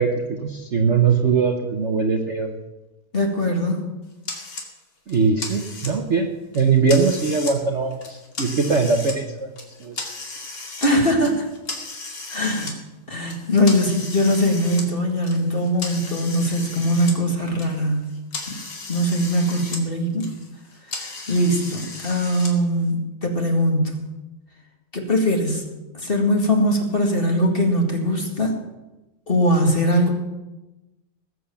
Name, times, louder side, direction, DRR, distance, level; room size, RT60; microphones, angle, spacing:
voice 1, 0.0-2.5 5.1-6.3 6.5-9.5 9.8-10.1, right 5 dB, 45° right, 3 dB, 1.2 m, -21 dB
voice 2, 3.1-3.8 10.8-11.5 12.3-12.7 13.1-18.1 18.5-18.6 18.9-20.3 21.0-23.9 24.9-25.6 25.9-28.5 29.3-30.1, equal, 30° left, 2 dB, 2.2 m, -21 dB
sound 1, 4.2-4.7 5.1-6.1 6.5-7.6 7.9-9.2 9.6-10.9 11.2-12.7 13.3-17.2 17.5-19.8 20.1-22.5, left 3 dB, 65° left, 3.0 m, -35 dB
19.5 x 7.9 x 7.1 m, 1.0 s
omnidirectional pair, 2.1 m